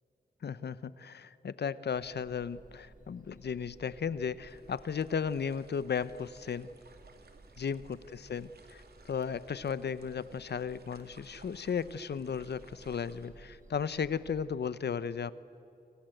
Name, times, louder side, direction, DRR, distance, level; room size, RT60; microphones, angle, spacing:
voice 1, 0.4-6.7 7.6-15.3, left 6 dB, 80° left, 16 dB, 0.9 m, -35 dB
sound 1, 1.9-14.5, right 3 dB, 50° right, 2.7 m, -58 dB
sound 2, 4.5-13.3, right 4 dB, 70° right, 2.7 m, -61 dB
28.5 x 26.0 x 7.9 m, 2.7 s
wide cardioid pair, 90°, 17 cm